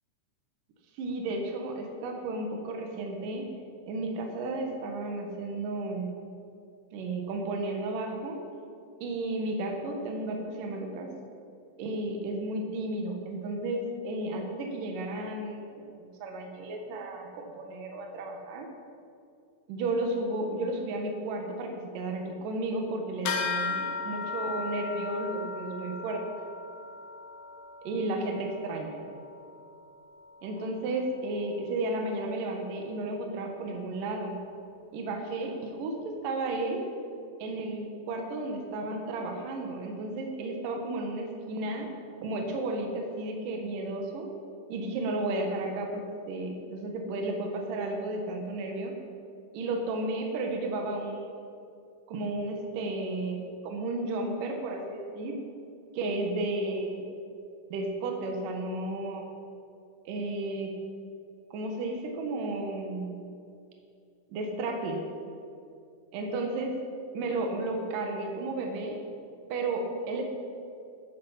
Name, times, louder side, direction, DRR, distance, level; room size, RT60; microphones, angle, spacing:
voice 1, 0.9-3.5 3.9-6.2 6.9-8.4 9.0-11.1 11.8-15.9 16.2-18.7 19.7-26.2 27.8-29.0 30.4-34.4 34.9-36.8 37.4-41.9 42.2-44.3 44.7-49.0 49.5-51.3 52.1-55.4 55.9-57.0 57.7-59.2 60.1-60.7 61.5-63.3 64.3-65.0 66.1-66.8 67.1-69.0 69.5-70.2, right 2 dB, 75° right, 2 dB, 2.9 m, -33 dB
sound 1, 23.2-33.1, left 4 dB, 70° left, 1.5 m, -38 dB
14.0 x 10.0 x 5.7 m, 2.5 s
omnidirectional pair, 4.0 m